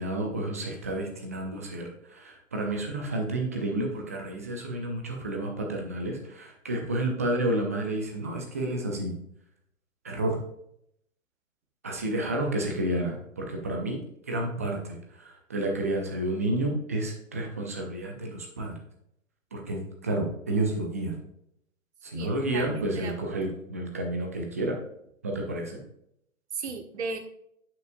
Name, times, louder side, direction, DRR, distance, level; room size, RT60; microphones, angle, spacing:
voice 1, 0.0-9.1 10.0-10.4 11.8-14.0 14.3-18.8 19.5-21.2 22.0-24.8 25.2-25.8, right 1 dB, 10° right, 2 dB, 0.4 m, -30 dB
voice 2, 22.1-23.1 26.5-27.2, right 5 dB, 50° right, 5 dB, 1.3 m, -35 dB
10.0 x 5.8 x 2.6 m, 0.75 s
figure-of-eight pair, 125°, 41 cm